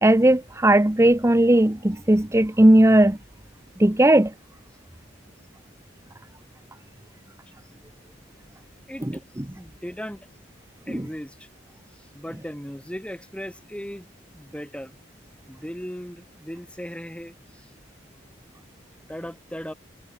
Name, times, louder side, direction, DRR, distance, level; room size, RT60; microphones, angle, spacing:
voice 1, 0.0-3.2 3.8-4.3 10.9-11.0, right 1 dB, 15° right, 0.8 m, -17 dB
voice 2, 9.5-10.3 10.9-11.5 12.1-14.1 14.3-15.0 15.5-17.7 19.1-19.7, equal, 5° left, 4.2 m, -37 dB
head